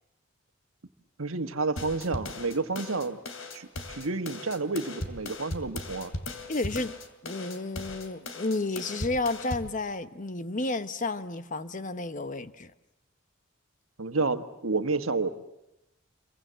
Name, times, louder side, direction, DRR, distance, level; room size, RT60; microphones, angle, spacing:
voice 1, 1.2-3.2 3.5-6.1 14.0-15.3, right 3 dB, 90° right, 1.5 m, -30 dB
sound 1, 1.8-9.7, left 2 dB, 85° left, 2.8 m, -38 dB
voice 2, 6.5-6.9 7.2-12.7, left 2 dB, 40° left, 1.0 m, -31 dB
28.5 x 23.0 x 7.6 m
head